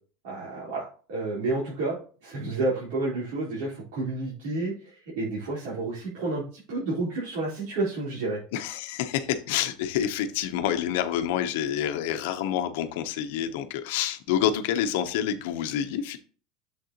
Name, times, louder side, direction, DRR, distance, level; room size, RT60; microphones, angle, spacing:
voice 1, 0.2-8.4, right 2 dB, 75° right, -7 dB, 3.9 m, -30 dB
voice 2, 8.5-16.2, left 10 dB, 65° left, 8 dB, 0.9 m, -28 dB
7.4 x 6.6 x 3.0 m, 0.38 s
cardioid pair, 180°, 0 cm